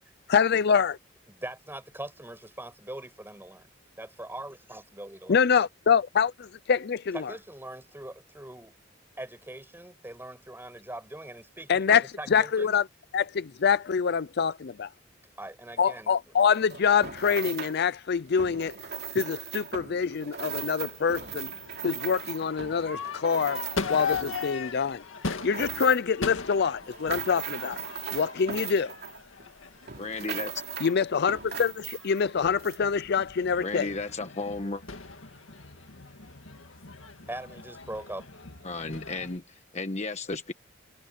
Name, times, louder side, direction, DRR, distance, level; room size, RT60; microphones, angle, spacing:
voice 1, 0.3-1.0 5.3-7.3 11.7-12.0 12.3-12.8 13.1-14.9 15.8-18.8 19.1-21.5 21.8-23.6 23.9-27.8 28.1-28.9 30.8-33.9, left 6 dB, 55° left, 0.5 m, -25 dB
voice 2, 1.3-3.7 4.0-5.4 7.1-8.7 9.2-12.8 15.4-16.1 37.3-38.3, right 1 dB, 10° right, 6.0 m, -41 dB
sound 1, 16.4-17.8 18.3-24.7 25.2-26.2 26.7-29.5 29.9-31.0 31.3-32.2 32.6-32.8, right 7 dB, 55° right, 2.8 m, -39 dB
Crowd / Fireworks, 20.4-39.4, left 5 dB, 80° left, 2.1 m, -39 dB
voice 3, 30.0-30.5 33.6-34.8 38.6-40.5, left 3 dB, 35° left, 1.3 m, -34 dB
head